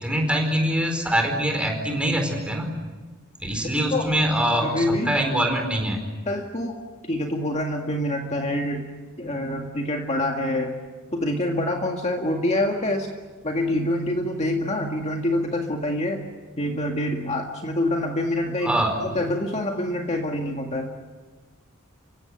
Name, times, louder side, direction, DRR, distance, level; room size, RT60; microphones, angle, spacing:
voice 1, 0.0-2.8 3.4-6.0 18.6-18.9, right 1 dB, 5° right, 2 dB, 4.6 m, -24 dB
voice 2, 4.6-5.2 6.3-6.8 7.1-8.9 9.2-10.8 11.1-13.1 13.4-16.2 16.6-20.9, left 1 dB, 30° left, 2 dB, 2.0 m, -26 dB
30.0 x 16.5 x 9.4 m, 1.3 s
head